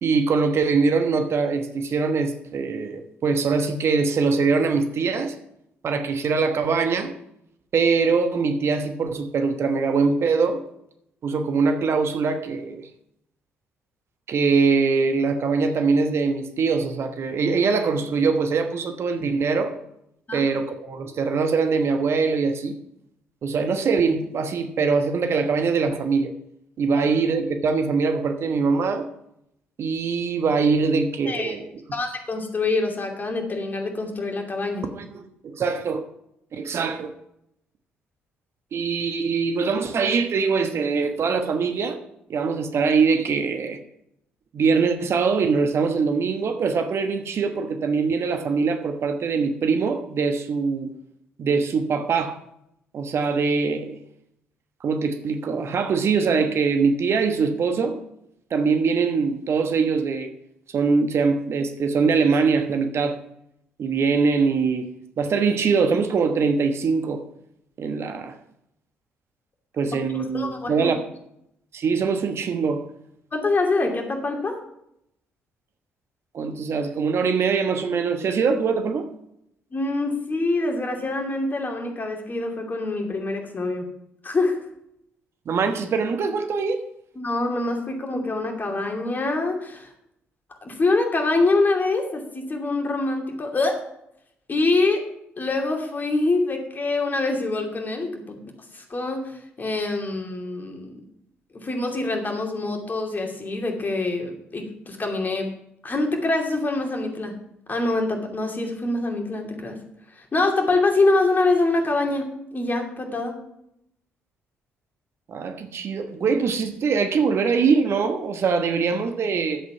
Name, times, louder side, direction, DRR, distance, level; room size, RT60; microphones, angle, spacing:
voice 1, 0.0-5.3 5.8-7.1 7.7-10.6 11.2-12.9 14.3-19.7 20.3-22.8 23.4-26.3 26.8-29.1 29.8-31.7 34.9-36.1 36.5-37.1 38.7-42.0 42.3-43.8 44.5-50.9 51.4-52.4 52.9-54.0 54.8-58.0 58.5-60.3 60.7-63.2 63.8-64.9 65.2-67.2 67.8-68.4 69.8-71.0 71.7-72.8 76.3-79.1 85.5-86.8 115.3-119.6, right 5 dB, 45° right, 7 dB, 1.2 m, -23 dB
voice 2, 31.9-34.9 70.1-70.9 73.3-74.6 79.7-83.9 84.2-84.6 87.2-89.9 90.6-93.8 94.5-95.0 95.4-98.4 98.7-101.0 101.5-105.5 105.8-107.3 107.7-109.8 110.2-113.4, left 2 dB, 30° left, 2 dB, 2.7 m, -25 dB
11.5 x 8.0 x 5.9 m, 0.78 s
figure-of-eight pair, 45°, 6 cm